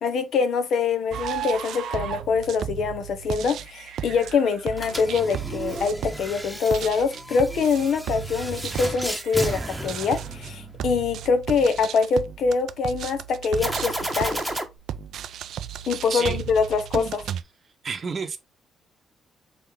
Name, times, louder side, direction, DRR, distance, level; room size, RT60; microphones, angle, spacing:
voice 1, 0.0-14.4 15.9-17.2, left 5 dB, 70° left, 1.0 m, -24 dB
sound 1, 1.1-17.4, right 10 dB, 75° right, 0.4 m, -35 dB
sound 2, 4.7-10.9 13.5-14.6, right 1 dB, 5° right, 1.0 m, -33 dB
voice 2, 17.8-18.4, right 5 dB, 45° right, 0.8 m, -30 dB
3.8 x 3.7 x 3.6 m
cardioid pair, 90°, 0 cm